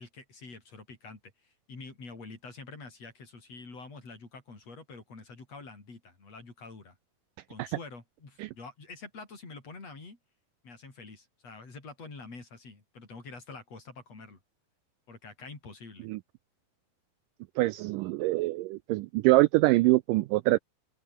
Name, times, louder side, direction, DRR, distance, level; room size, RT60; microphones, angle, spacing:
voice 1, 0.0-7.0 7.5-10.2 10.6-14.4 15.1-16.1, left 3 dB, 40° left, 7.0 m, -47 dB
voice 2, 17.6-20.6, right 19 dB, 85° right, 1.9 m, -24 dB
open air
omnidirectional pair, 4.4 m